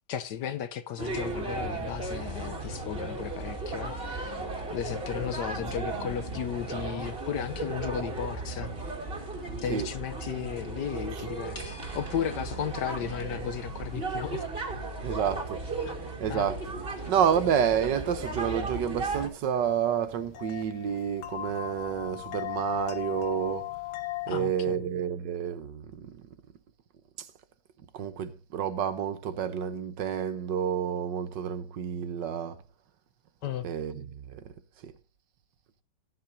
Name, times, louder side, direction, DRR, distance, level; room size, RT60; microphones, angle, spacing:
voice 1, 0.1-4.4 4.7-8.7 9.6-14.5 15.8-15.9 16.3-16.5 17.0-17.1 24.3-24.8 33.4-33.7, left 9 dB, 65° left, 1.3 m, -35 dB
sound 1, 1.0-19.3, right 3 dB, 30° right, 3.0 m, -35 dB
sound 2, 11.5-14.4, right 4 dB, 35° left, 3.1 m, -45 dB
voice 2, 15.0-15.9 16.2-16.6 17.1-23.7 24.3-26.2 27.9-32.6 33.6-34.4 34.8-34.9, right 8 dB, 65° right, 1.5 m, -29 dB
sound 3, 16.7-24.3, left 16 dB, 85° left, 1.6 m, -39 dB
17.5 x 10.5 x 2.7 m
omnidirectional pair, 2.2 m